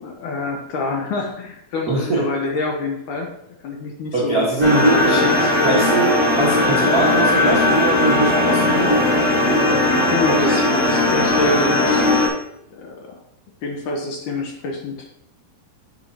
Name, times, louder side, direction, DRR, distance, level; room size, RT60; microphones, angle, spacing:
voice 1, 0.0-3.3 3.6-5.4 10.1-12.3 12.7-13.2 13.6-15.0, left 3 dB, 70° left, 0 dB, 2.1 m, -26 dB
voice 2, 1.9-2.3 4.1-9.0, right 2 dB, 80° right, -5 dB, 0.8 m, -21 dB
sound 1, 4.6-12.3, left 2 dB, 10° right, 3.3 m, -18 dB
10.5 x 7.6 x 2.9 m, 0.76 s
omnidirectional pair, 4.5 m